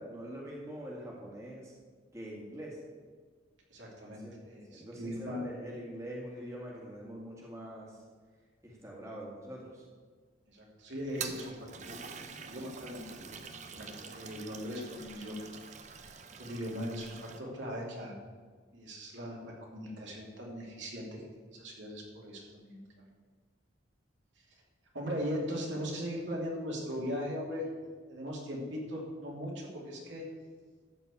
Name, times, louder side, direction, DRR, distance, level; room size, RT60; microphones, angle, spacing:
voice 1, 0.0-1.7 2.1-2.8 4.1-8.0 8.6-9.9, right 1 dB, 15° right, -3 dB, 1.8 m, -44 dB
voice 2, 3.7-5.4 10.5-15.4 16.4-18.2 18.7-22.8 24.9-27.7 28.1-30.3, equal, 70° right, -2 dB, 2.7 m, -39 dB
Toilet flush, 11.0-17.4, right 5 dB, 35° right, 0.7 m, -45 dB
13.0 x 4.5 x 8.2 m, 1.5 s
head